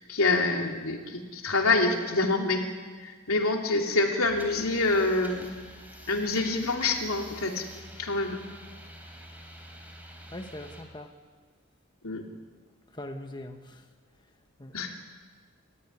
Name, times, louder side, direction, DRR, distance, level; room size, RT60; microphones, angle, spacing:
voice 1, 0.1-2.6 3.0-5.5 6.1-7.7 8.0-8.4 12.0-12.2 14.7-15.0, left 3 dB, 85° left, 2 dB, 3.1 m, -26 dB
sound 1, 4.2-10.8, equal, 10° right, 3.4 m, -47 dB
voice 2, 10.3-11.1 12.9-13.8 14.6-14.8, left 1 dB, 20° left, 5 dB, 1.2 m, -41 dB
28.5 x 14.5 x 9.8 m, 1.5 s
head